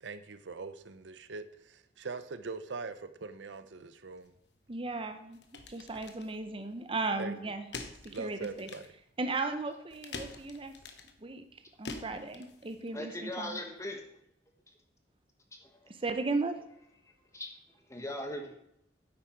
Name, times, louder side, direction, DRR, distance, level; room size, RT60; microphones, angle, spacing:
voice 1, 0.0-4.3 7.2-7.3 8.1-8.9, right 4 dB, 85° right, 12 dB, 0.7 m, -42 dB
sound 1, 4.2-13.0, left 3 dB, 70° left, 1.1 m, -48 dB
voice 2, 4.7-5.4 5.7-7.7 8.0-8.7 9.2-10.7 11.2-13.6 15.9-16.6, right 3 dB, 30° right, 8 dB, 0.7 m, -36 dB
voice 3, 12.9-14.0 15.6-15.9 17.3-17.5 17.9-18.6, left 1 dB, 15° left, 3 dB, 1.4 m, -39 dB
9.7 x 8.3 x 4.5 m, 0.76 s
head